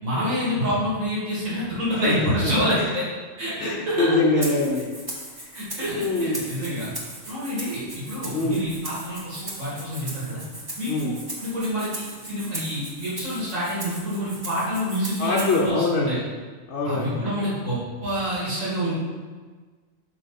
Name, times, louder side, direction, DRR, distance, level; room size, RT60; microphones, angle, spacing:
voice 1, 0.0-3.0 3.4-4.2 5.5-6.9 7.2-10.4 10.8-16.2 16.8-18.9, equal, 75° right, -9 dB, 2.8 m, -27 dB
voice 2, 1.9-2.9 3.6-4.9 5.4-5.5 5.9-6.7 8.3-8.6 10.9-11.2 15.2-16.2 16.7-17.2, left 3 dB, 60° left, -3 dB, 1.0 m, -24 dB
Rattle (instrument), 4.4-15.7, right 1 dB, 20° right, 1.1 m, -38 dB
6.2 x 5.6 x 4.2 m, 1.4 s
omnidirectional pair, 1.4 m